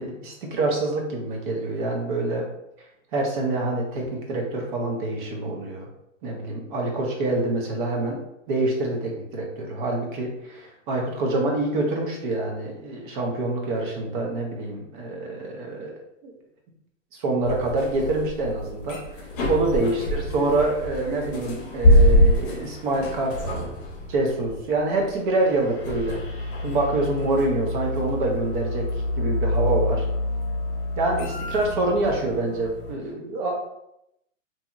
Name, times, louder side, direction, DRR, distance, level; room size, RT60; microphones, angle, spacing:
voice 1, 0.0-2.5 3.1-5.9 6.2-8.2 8.5-15.9 16.2-16.3 17.2-23.7 24.1-26.2 26.6-28.9 29.2-30.1 31.0-33.6, right 2 dB, 40° right, 0 dB, 0.7 m, -26 dB
sound 1, 17.5-32.9, left 1 dB, 40° left, 0.8 m, -25 dB
2.7 x 2.7 x 2.3 m, 0.80 s
hypercardioid pair, 135°, 39 cm